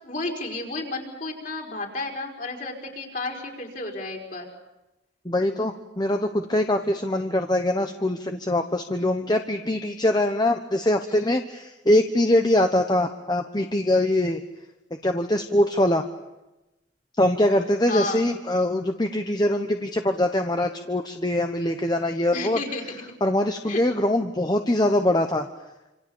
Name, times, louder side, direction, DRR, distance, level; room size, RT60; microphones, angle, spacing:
voice 1, 0.0-4.5 17.9-18.2 22.3-23.0 23.7-23.8, left 2 dB, 40° left, 1 dB, 4.9 m, -32 dB
voice 2, 5.2-14.4 15.0-16.0 17.2-22.6 23.2-25.5, left 1 dB, 20° left, 6 dB, 1.0 m, -23 dB
27.0 x 27.0 x 7.1 m, 1.0 s
head